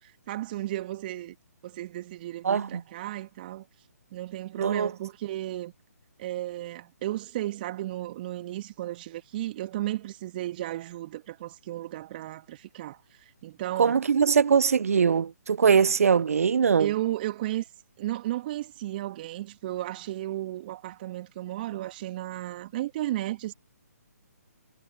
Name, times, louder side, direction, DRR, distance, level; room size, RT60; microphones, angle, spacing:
voice 1, 0.0-1.4 1.6-3.7 4.1-5.7 6.2-13.0 13.4-14.0 16.8-17.7 18.0-23.5, right 15 dB, 35° right, 2.4 m, -34 dB
voice 2, 2.4-2.8 4.6-4.9 13.8-16.9, right 6 dB, 60° right, 0.7 m, -22 dB
figure-of-eight pair, 140°, 9 cm